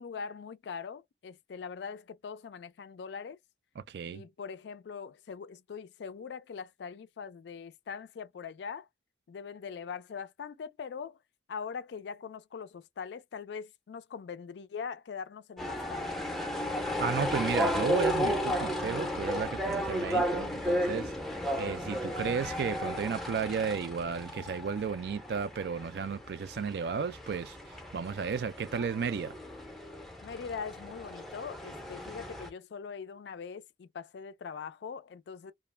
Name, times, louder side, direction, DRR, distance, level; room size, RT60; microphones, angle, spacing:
voice 1, 0.0-3.4 4.1-8.9 9.3-11.2 11.5-16.1 30.2-35.5, left 6 dB, 70° left, 0.3 m, -42 dB
voice 2, 3.8-4.2 17.0-21.1 21.6-27.6 27.9-29.4, right 6 dB, 60° right, 0.3 m, -33 dB
sound 1, 15.6-32.5, equal, ahead, 0.5 m, -34 dB
2.3 x 2.1 x 3.2 m
head